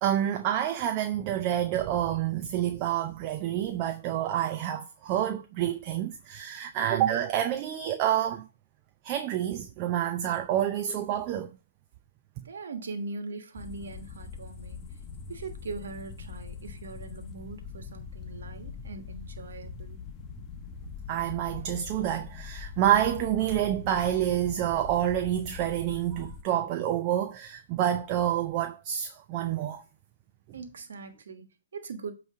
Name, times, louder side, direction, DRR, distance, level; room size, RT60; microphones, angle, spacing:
voice 1, 0.0-8.5 9.0-11.5 21.1-29.8, right 11 dB, 35° right, 0.6 m, -28 dB
voice 2, 12.4-14.8 15.3-20.3 30.5-32.1, right 4 dB, 75° right, 1.5 m, -41 dB
sound 1, 13.5-26.4, left 6 dB, 25° left, 0.9 m, -42 dB
8.3 x 3.2 x 4.8 m
hypercardioid pair, 135°, 0 cm